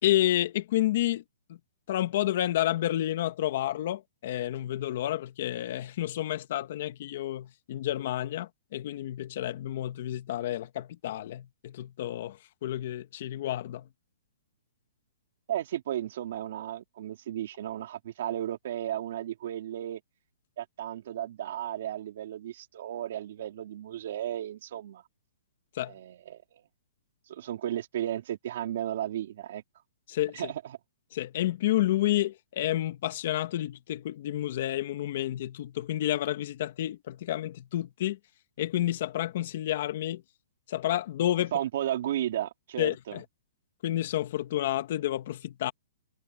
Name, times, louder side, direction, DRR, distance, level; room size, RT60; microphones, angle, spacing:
voice 1, 0.0-1.2 1.5-1.6 1.9-13.9 25.7-25.9 30.1-30.4 31.1-38.2 38.6-40.2 40.7-41.5 42.8-43.2 43.8-45.7, left 13 dB, 40° left, 1.6 m, -30 dB
voice 2, 15.5-20.0 20.6-25.0 25.8-26.6 27.3-29.6 30.3-30.8 41.5-43.2, right 11 dB, 45° right, 3.6 m, -34 dB
hypercardioid pair, 175°, 0 cm